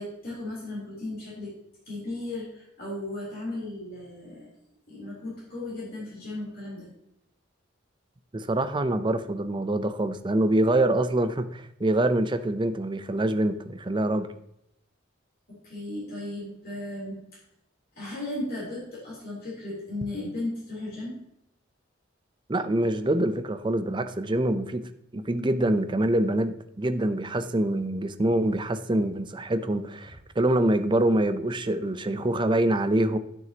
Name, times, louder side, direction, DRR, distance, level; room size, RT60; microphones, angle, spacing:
voice 1, 0.0-1.5 1.9-4.5 4.9-6.9 15.5-17.2 17.9-21.2, left 2 dB, 50° left, -7 dB, 3.4 m, -35 dB
voice 2, 8.3-14.3 22.5-33.2, right 1 dB, 25° right, 10 dB, 0.5 m, -25 dB
12.0 x 6.3 x 2.9 m, 0.78 s
head